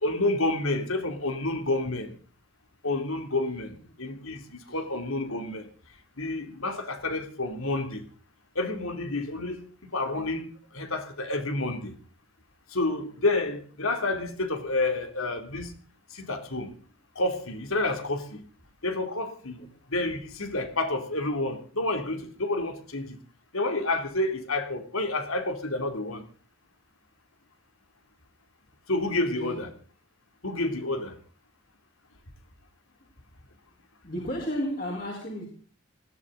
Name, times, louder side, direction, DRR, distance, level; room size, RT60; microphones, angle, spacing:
voice 1, 0.0-2.2 2.8-5.7 6.2-8.0 8.5-9.6 9.9-11.9 12.7-15.7 16.1-16.7 17.1-18.4 18.8-19.6 19.9-23.2 23.5-26.2 28.9-29.7 30.4-31.2, left 2 dB, 85° left, 3.2 m, -29 dB
voice 2, 34.0-35.5, equal, 40° left, 4.7 m, -33 dB
20.0 x 17.5 x 4.1 m
head